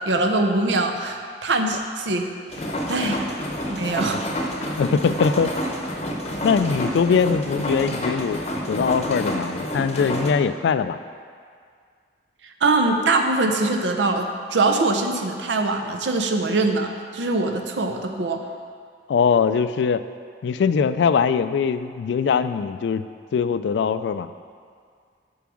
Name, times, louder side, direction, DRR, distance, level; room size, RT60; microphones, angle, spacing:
voice 1, 0.1-2.3 2.5-3.2 3.7-4.2 12.6-18.4, right 2 dB, 90° right, 4 dB, 0.7 m, -23 dB
sound 1, 2.5-10.3, equal, 35° left, 0.7 m, -28 dB
voice 2, 4.8-5.5 6.4-8.4 8.7-11.0 19.1-20.0 20.4-23.1 23.3-24.3, left 6 dB, 80° left, 12 dB, 0.3 m, -21 dB
7.0 x 4.7 x 6.2 m, 2.1 s
head